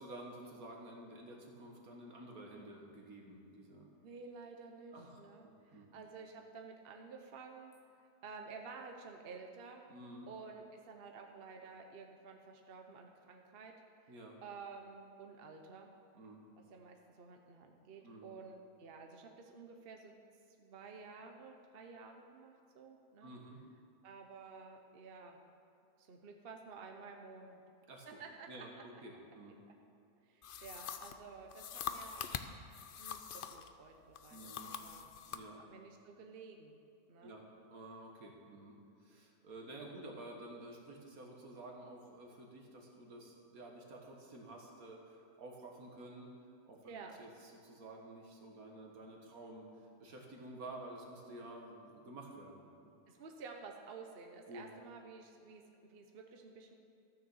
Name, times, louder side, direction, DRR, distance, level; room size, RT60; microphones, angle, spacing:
voice 1, 0.0-3.9 4.9-5.9 9.9-10.3 14.1-14.4 16.1-16.4 18.0-18.3 23.2-23.6 27.9-28.2 28.5-29.6 34.3-34.7 35.3-35.6 37.2-46.3 46.7-46.9 47.2-49.7 50.0-52.9 54.5-54.7, right 1 dB, 70° right, 0 dB, 2.0 m, -51 dB
voice 2, 4.0-9.8 10.3-13.7 14.0-14.1 14.4-15.9 16.7-20.1 20.6-23.3 24.0-25.5 26.0-27.6 28.2-28.8 30.2-32.2 33.0-35.1 35.7-36.8 37.1-37.4 46.8-47.1 53.1-56.7, right 4 dB, 45° right, 3 dB, 1.0 m, -52 dB
sound 1, 30.4-33.7 34.1-35.5, left 8 dB, 70° left, 0.5 m, -44 dB
13.5 x 6.5 x 7.1 m, 2.6 s
omnidirectional pair, 1.6 m